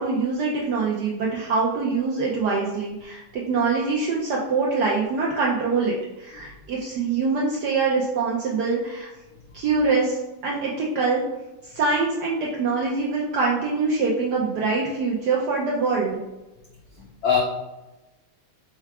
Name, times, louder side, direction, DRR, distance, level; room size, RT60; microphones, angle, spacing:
voice 1, 0.0-9.1 9.5-10.2 10.4-11.2 11.6-16.2, right 4 dB, 75° right, -3 dB, 0.9 m, -24 dB
voice 2, 16.9-17.4, left 7 dB, 85° left, -2 dB, 0.8 m, -24 dB
4.5 x 2.3 x 4.6 m, 1.0 s
omnidirectional pair, 2.4 m